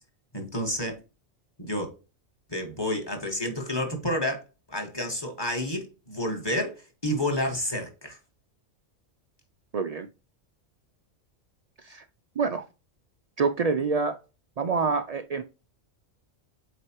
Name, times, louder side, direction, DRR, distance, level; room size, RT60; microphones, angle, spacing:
voice 1, 0.3-1.0 1.6-1.9 2.5-4.4 4.7-8.2, left 1 dB, 20° left, 1.6 m, -30 dB
voice 2, 9.7-10.1 11.8-12.0 12.4-12.6 13.4-14.2 14.6-15.4, right 4 dB, 80° right, 0.3 m, -26 dB
7.8 x 4.2 x 3.0 m
omnidirectional pair, 1.3 m